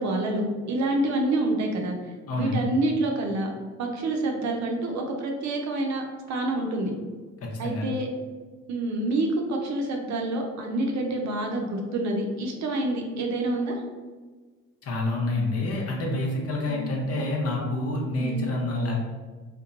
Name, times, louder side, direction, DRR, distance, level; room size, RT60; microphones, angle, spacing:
voice 1, 0.0-2.0 2.3-3.5 3.8-6.9 7.6-8.1 8.7-13.7 16.7-16.9 18.1-18.4, right 2 dB, 65° right, 2 dB, 0.6 m, -27 dB
voice 2, 2.3-2.6 7.4-7.8 14.8-19.0, left 2 dB, 50° left, -1 dB, 0.7 m, -28 dB
2.8 x 2.1 x 2.4 m, 1.4 s
cardioid pair, 90°, 30 cm